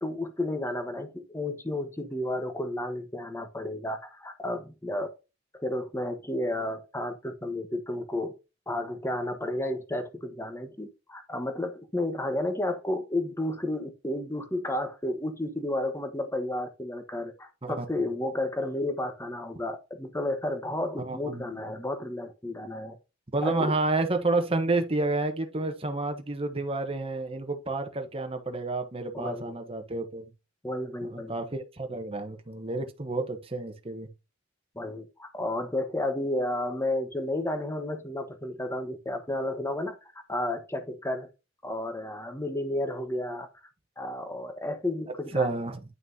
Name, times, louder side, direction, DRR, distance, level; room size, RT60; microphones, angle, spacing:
voice 1, 0.0-5.1 5.6-8.3 8.7-23.0 23.4-23.7 29.1-29.5 30.6-31.3 34.7-41.3 41.6-43.5 44.0-45.5, left 1 dB, 15° left, 1.2 m, -32 dB
voice 2, 21.0-21.6 23.3-30.3 31.1-34.1 45.3-45.8, right 2 dB, 30° right, 1.1 m, -30 dB
9.5 x 6.0 x 2.8 m
head